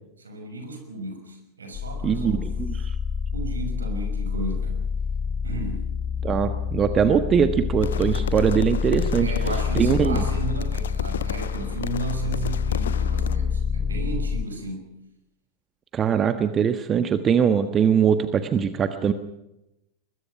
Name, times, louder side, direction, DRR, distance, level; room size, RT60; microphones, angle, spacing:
voice 1, 0.2-2.8 3.3-4.7 5.4-5.9 9.2-14.9, right 2 dB, 75° right, 5 dB, 5.9 m, -34 dB
sound 1, 1.7-14.4, left 6 dB, 30° left, 1.3 m, -27 dB
voice 2, 2.0-3.0 6.2-9.3 9.7-10.2 15.9-19.1, right 7 dB, 25° right, 10 dB, 1.4 m, -22 dB
sound 2, 7.8-13.4, left 9 dB, 65° left, 0.8 m, -35 dB
22.5 x 21.5 x 5.9 m, 0.89 s
figure-of-eight pair, 90°, 0 cm